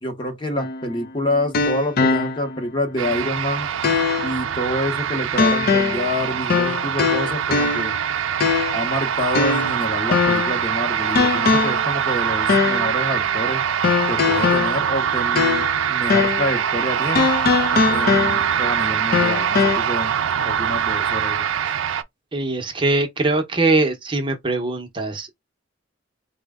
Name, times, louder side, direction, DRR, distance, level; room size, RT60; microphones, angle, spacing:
voice 1, 0.0-3.7 4.2-7.9 8.7-13.6 14.0-17.3 17.9-20.1 20.4-21.7, left 1 dB, 25° left, 0.8 m, -27 dB
sound 1, 0.6-2.6 3.1-3.2 3.8-4.4 5.4-6.1 6.5-8.0 8.4-8.9 9.3-10.6 11.2-11.9 12.5-12.9 13.8-15.8 16.1-16.5 17.2-18.7 19.1-19.8, left 5 dB, 50° left, 0.5 m, -21 dB
sound 2, 3.0-22.0, right 8 dB, 85° right, 0.4 m, -23 dB
voice 2, 22.3-25.3, right 2 dB, 25° right, 0.7 m, -22 dB
4.3 x 2.1 x 3.4 m
head